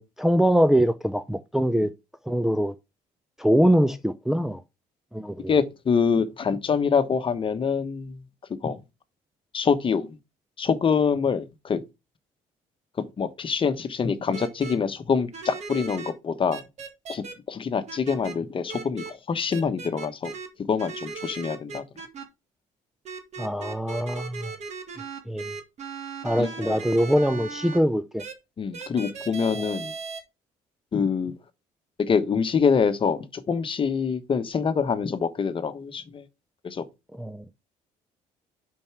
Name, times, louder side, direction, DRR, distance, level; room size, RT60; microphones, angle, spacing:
voice 1, 0.0-1.9 2.3-2.7 3.4-4.6 5.1-5.5 23.4-24.5 25.3-25.5 26.2-28.2 29.6-29.7 37.2-37.4, equal, 5° right, 0.6 m, -23 dB
voice 2, 5.5-8.2 8.6-8.8 9.5-10.2 10.6-11.8 13.2-16.6 17.1-20.3 20.7-21.8 26.4-26.8 28.6-29.9 30.9-31.3 32.0-36.2 36.6-36.8, left 6 dB, 35° left, 1.1 m, -25 dB
sound 1, 14.3-14.7 15.3-16.1 16.5-17.3 17.9-18.3 18.7-19.1 19.5-20.5 20.8-22.2 23.1-27.8 28.2-28.3 28.7-30.2, right 5 dB, 50° right, 2.0 m, -37 dB
5.3 x 4.6 x 5.9 m
supercardioid pair, 90°, 15 cm